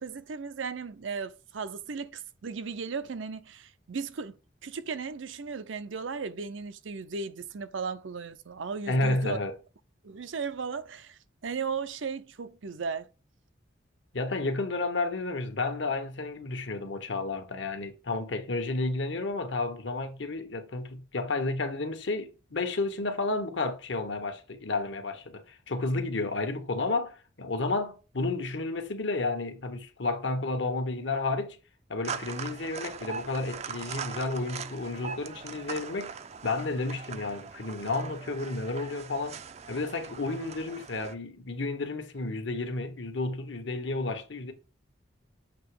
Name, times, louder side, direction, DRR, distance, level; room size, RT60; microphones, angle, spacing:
voice 1, 0.0-4.4 4.6-9.4 10.0-13.1, right 5 dB, 85° right, 0.6 m, -36 dB
voice 2, 8.9-9.5 14.1-31.6 31.9-36.2 36.4-39.4 39.7-44.5, left 3 dB, 70° left, 1.1 m, -31 dB
sound 1, 32.0-41.1, right 6 dB, 35° right, 0.4 m, -41 dB
7.3 x 2.9 x 4.7 m
head